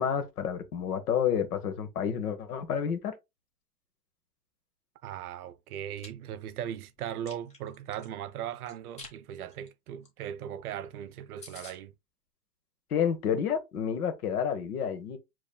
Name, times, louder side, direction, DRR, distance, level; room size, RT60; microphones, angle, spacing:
voice 1, 0.0-3.1 12.9-15.2, left 8 dB, 60° left, 1.3 m, -29 dB
voice 2, 5.0-11.9, right 10 dB, 60° right, 0.7 m, -38 dB
Chewing mastication, 5.7-6.1 6.6-8.1 8.7-9.2 9.5-9.7 10.0-10.1 10.4-10.5 10.8-10.9 11.1-11.2 11.4-11.8, left 3 dB, 15° left, 1.0 m, -48 dB
7.0 x 3.1 x 2.2 m
hypercardioid pair, 150°, 49 cm